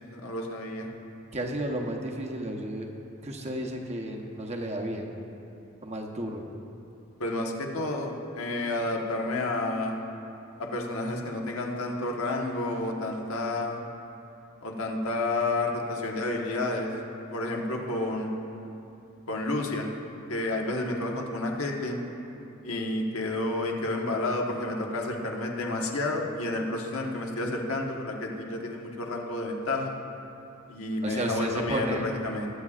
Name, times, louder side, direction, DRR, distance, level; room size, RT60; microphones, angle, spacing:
voice 1, 0.1-0.9 7.2-10.0 10.6-13.8 14.6-16.9 17.3-18.3 19.3-19.9 20.3-22.0 22.6-29.9 30.7-32.5, left 2 dB, 80° left, 0 dB, 1.2 m, -30 dB
voice 2, 1.3-2.9 3.2-5.1 5.8-6.4 31.0-32.1, right 1 dB, 30° right, 1 dB, 0.9 m, -32 dB
21.0 x 8.6 x 2.5 m, 2.8 s
head